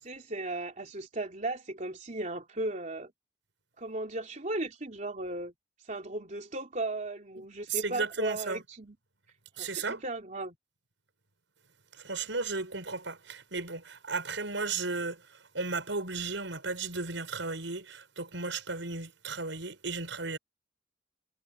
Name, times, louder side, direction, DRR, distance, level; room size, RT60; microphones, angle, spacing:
voice 1, 0.0-3.1 3.8-5.5 5.9-9.0 9.6-10.6, right 2 dB, 40° right, 3.6 m, -36 dB
voice 2, 7.4-8.6 9.6-10.0 11.9-20.4, right 4 dB, 80° right, 6.0 m, -35 dB
head